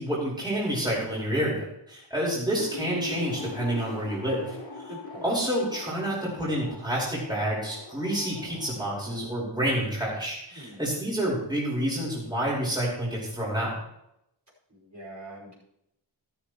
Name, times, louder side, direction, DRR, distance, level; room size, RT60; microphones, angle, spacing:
voice 1, 0.0-4.5 5.2-13.8, right 1 dB, 10° right, -6 dB, 4.6 m, -28 dB
sound 1, 2.6-9.3, left 4 dB, 80° left, 3.9 m, -41 dB
voice 2, 4.9-5.2 10.6-10.8 14.7-15.5, right 1 dB, 40° right, -4 dB, 5.4 m, -44 dB
13.5 x 13.0 x 3.1 m, 0.82 s
wide cardioid pair, 65°, 45 cm